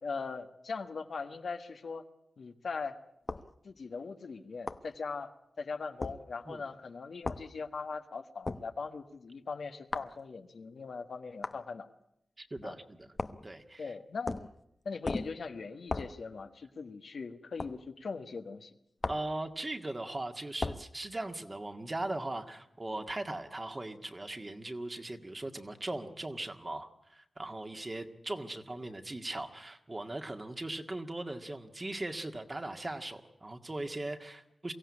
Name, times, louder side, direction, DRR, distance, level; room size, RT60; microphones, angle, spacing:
voice 1, 0.0-2.1 2.4-3.0 3.6-11.9 12.6-12.8 13.8-14.3 14.8-18.7, left 4 dB, 75° left, 7 dB, 1.5 m, -40 dB
sound 1, 3.3-3.5 4.7-4.9 6.0-6.2 7.2-7.5 8.5-8.7 9.9-10.1 11.4-11.6 13.2-13.5 14.3-14.6 15.0-15.4 15.9-16.2 17.6-17.8 19.0-19.3 20.6-20.9, left 3 dB, 40° left, 1.0 m, -36 dB
voice 2, 12.4-13.1 13.4-13.9 19.1-34.7, right 2 dB, 30° right, 6 dB, 1.9 m, -39 dB
23.5 x 16.0 x 9.8 m, 0.81 s
wide cardioid pair, 75°, 0 cm